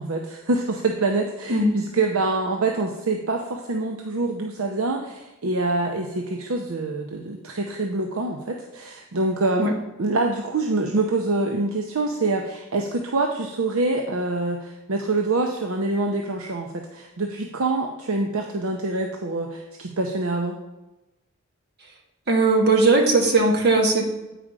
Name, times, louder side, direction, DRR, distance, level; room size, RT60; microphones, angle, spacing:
voice 1, 0.0-9.7 10.0-20.6, right 2 dB, 70° right, 2 dB, 0.7 m, -25 dB
voice 2, 22.3-24.1, right 3 dB, 50° right, 0 dB, 1.6 m, -18 dB
8.8 x 4.9 x 4.9 m, 1.0 s
head